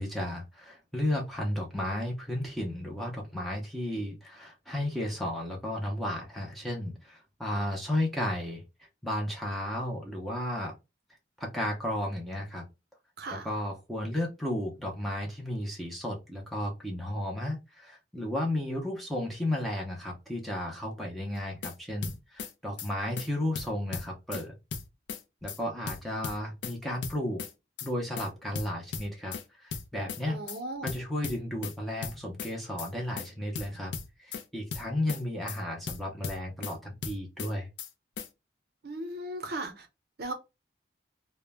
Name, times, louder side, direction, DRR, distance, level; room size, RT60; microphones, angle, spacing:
voice 1, 0.0-8.6 9.0-10.8 11.4-12.7 13.3-24.5 25.4-27.4 27.8-30.4 30.8-33.9 34.2-37.7, left 1 dB, ahead, 0.5 m, -33 dB
sound 1, 21.4-21.7 22.0-22.5 22.8-22.9 23.2-23.3 23.6-24.4 24.7-25.2 25.5-25.6 25.9-26.8 27.0-27.5 27.8-27.9 28.2-28.3 28.6-29.4 29.7-30.2 30.5-30.6 30.9-31.7 32.0-32.5 32.8-32.9 33.2-33.3 33.6-34.4 34.7-35.2 35.5-35.6 35.9-36.7 37.0-37.5 37.8-37.9 38.2-38.3, left 6 dB, 65° left, 0.4 m, -37 dB
voice 2, 30.3-30.9 38.8-39.9 40.2-40.3, right 2 dB, 55° right, 0.6 m, -37 dB
2.1 x 2.0 x 3.3 m
head